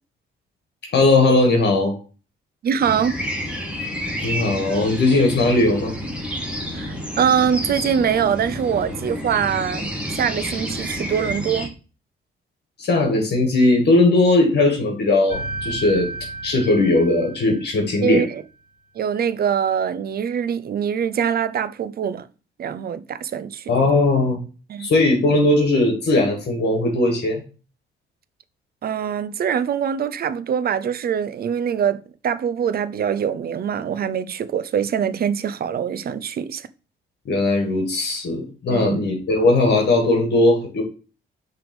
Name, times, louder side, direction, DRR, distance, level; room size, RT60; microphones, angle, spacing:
voice 1, 0.9-1.9 4.2-5.9 12.8-16.1 16.4-18.2 23.7-24.4 24.8-27.4 37.2-40.8, left 2 dB, 55° left, 1.7 m, -18 dB
voice 2, 2.6-3.2 6.7-11.7 18.0-18.4 18.9-22.3 22.6-23.9 24.7-24.9 28.8-36.7 38.7-39.1, right 8 dB, 50° right, 0.6 m, -23 dB
sound 1, 2.8-11.7, equal, 5° right, 1.8 m, -30 dB
sound 2, 15.3-18.2, right 2 dB, 40° left, 3.0 m, -33 dB
6.0 x 3.4 x 5.2 m
cardioid pair, 90°, 20 cm